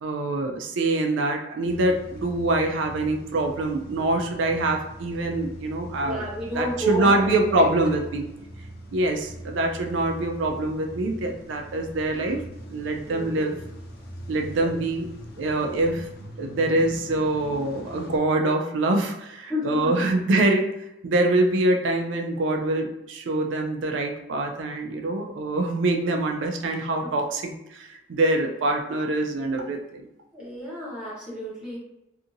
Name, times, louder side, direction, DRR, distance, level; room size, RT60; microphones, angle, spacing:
voice 1, 0.0-6.3 6.6-8.3 8.9-12.4 12.7-13.6 14.3-15.1 15.4-16.1 16.4-20.7 21.0-30.1, right 2 dB, 80° right, 3 dB, 0.4 m, -24 dB
Car / Engine starting / Idling, 1.6-18.2, right 1 dB, 55° left, 0.5 m, -41 dB
voice 2, 6.0-7.6 13.0-13.6 14.5-14.8 19.5-20.1 30.3-31.8, equal, 5° right, -8 dB, 0.9 m, -31 dB
2.7 x 2.5 x 2.6 m, 0.90 s
head